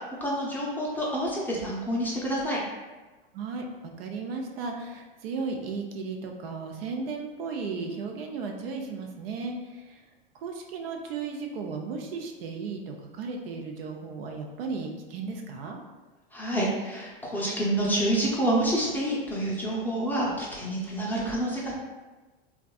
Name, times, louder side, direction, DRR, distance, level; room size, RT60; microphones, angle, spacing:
voice 1, 0.2-2.6 16.3-21.7, right 1 dB, 5° left, -5 dB, 0.5 m, -28 dB
voice 2, 3.3-10.0 10.3-15.8, right 4 dB, 75° right, 2 dB, 0.5 m, -35 dB
2.6 x 2.3 x 2.3 m, 1.2 s
hypercardioid pair, 105°, 29 cm